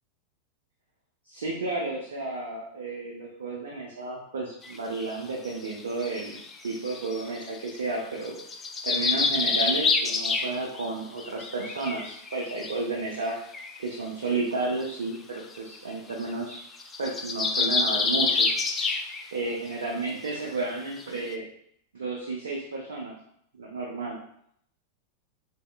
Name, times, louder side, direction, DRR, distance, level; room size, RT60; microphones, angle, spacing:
voice 1, 1.3-8.4 8.8-13.4 13.8-16.7 17.0-18.5 19.3-21.4 21.9-23.2 23.6-24.2, right 3 dB, 65° right, -1 dB, 0.5 m, -32 dB
sound 1, 4.6-4.8 5.5-7.8 8.2-10.9 11.2-12.8 13.2-13.3 13.5-13.8 14.8-14.9 15.1-15.2 15.5-15.7 16.1-16.2 16.5-19.4 19.7-19.9 20.3-20.4 21.0-21.1, left 4 dB, 20° left, 0.4 m, -27 dB
4.0 x 3.4 x 2.2 m, 0.70 s
figure-of-eight pair, 90°, 0 cm